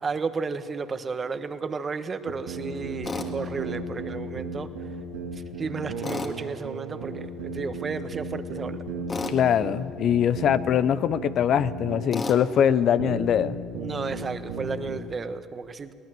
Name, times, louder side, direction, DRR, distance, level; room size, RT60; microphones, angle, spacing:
voice 1, 0.0-4.7 5.6-7.3 7.5-8.8 13.8-15.9, right 4 dB, 35° right, 11 dB, 1.3 m, -32 dB
sound 1, 2.3-15.0, right 3 dB, 85° right, 2.4 m, -35 dB
Tools, 3.0-3.3 6.0-6.4 9.1-9.4 12.1-12.4, left 4 dB, 35° left, 2.3 m, -31 dB
voice 2, 9.3-13.6, left 9 dB, 55° left, 15 dB, 0.6 m, -22 dB
21.5 x 18.5 x 7.7 m, 2.3 s
hypercardioid pair, 70°, 0 cm